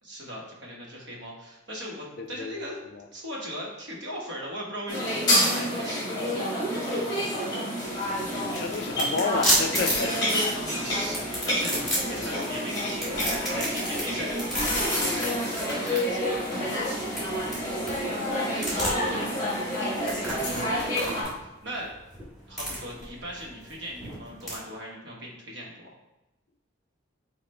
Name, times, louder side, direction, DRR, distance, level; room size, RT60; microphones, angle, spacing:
voice 1, 0.0-2.8 3.1-6.2 10.5-14.4 14.7-16.9 18.5-19.0 19.3-21.3 21.6-21.9 22.5-25.9, equal, 65° right, -3 dB, 1.2 m, -39 dB
voice 2, 2.2-2.5 2.8-3.1 7.8-8.0 8.4-10.2 11.7-11.8 12.2-12.4 13.8-14.0, left 4 dB, 55° left, 6 dB, 0.4 m, -31 dB
sound 1, 4.9-21.2, equal, 20° left, 1.6 m, -28 dB
sound 2, 7.9-24.6, equal, ahead, 1.4 m, -33 dB
5.1 x 2.4 x 4.3 m, 0.95 s
head